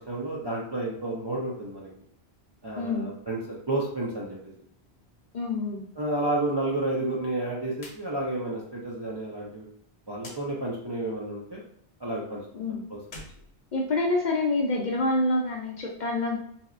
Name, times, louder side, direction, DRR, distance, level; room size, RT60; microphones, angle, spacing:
voice 1, 0.1-1.9 2.6-4.4 6.0-9.7 10.1-11.6 12.0-13.2, right 2 dB, 40° right, -5 dB, 0.4 m, -31 dB
voice 2, 2.8-3.1 5.3-5.8 12.5-12.8 13.7-16.4, left 2 dB, 55° left, 0 dB, 0.5 m, -27 dB
sound 1, 7.7-8.0 8.3-8.4 10.2-10.4 13.0-14.3, left 2 dB, 75° left, 1.0 m, -46 dB
4.1 x 2.1 x 2.4 m, 0.66 s
omnidirectional pair, 1.1 m